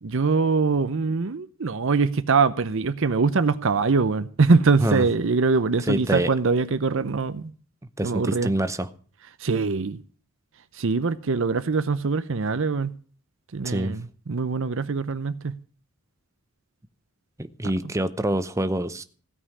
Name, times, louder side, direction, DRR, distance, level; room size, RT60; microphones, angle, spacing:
voice 1, 0.0-7.5 8.0-8.5 9.4-10.0 10.7-12.9 13.5-15.6 17.8-17.9, right 4 dB, 60° right, 0.6 m, -23 dB
voice 2, 5.9-6.3 8.0-8.9 13.6-14.0 17.4-19.0, right 1 dB, 15° right, 0.7 m, -26 dB
16.5 x 5.6 x 9.6 m
head